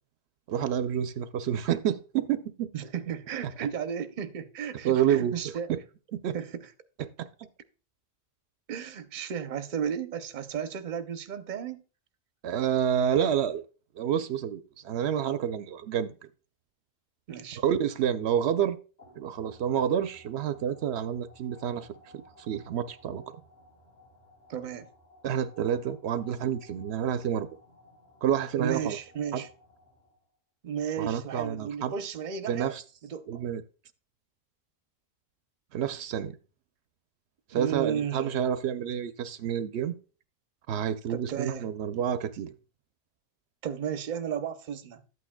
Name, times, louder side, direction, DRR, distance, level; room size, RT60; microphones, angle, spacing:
voice 1, 0.5-2.7 4.8-5.8 6.1-6.4 7.0-7.3 12.4-13.6 14.0-16.1 17.6-18.8 19.2-21.9 22.1-23.2 25.2-27.5 28.2-29.0 29.3-29.4 31.0-31.9 32.5-32.8 33.3-33.6 35.7-36.4 37.5-39.9 40.7-42.5, right 9 dB, 80° right, 0.8 m, -29 dB
voice 2, 2.7-5.7 6.3-6.7 8.7-11.8 17.3-17.6 24.5-24.9 28.6-29.5 30.6-32.8 33.0-33.4 37.5-38.6 41.1-41.7 43.6-45.0, right 8 dB, 50° right, 0.8 m, -34 dB
sound 1, 19.0-30.3, left 1 dB, 40° left, 4.1 m, -57 dB
12.0 x 8.5 x 2.2 m
omnidirectional pair, 1.1 m